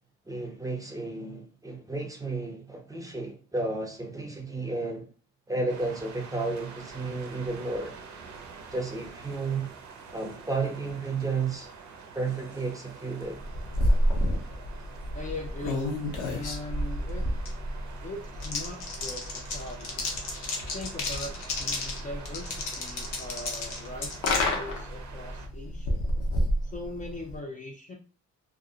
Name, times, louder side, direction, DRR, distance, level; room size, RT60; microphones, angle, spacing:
voice 1, 0.3-5.1 5.5-8.0 8.7-9.7 10.1-11.7 12.1-13.4, right 3 dB, 10° right, 0.7 m, -32 dB
sound 1, 5.7-25.5, right 5 dB, 70° right, 0.6 m, -47 dB
sound 2, 13.3-27.4, left 1 dB, 90° left, 0.7 m, -30 dB
voice 2, 15.1-15.9 16.3-17.2 18.0-20.1 20.7-26.0 26.6-28.0, left 2 dB, 25° left, 0.5 m, -40 dB
2.5 x 2.0 x 2.7 m
cardioid pair, 90°, 30 cm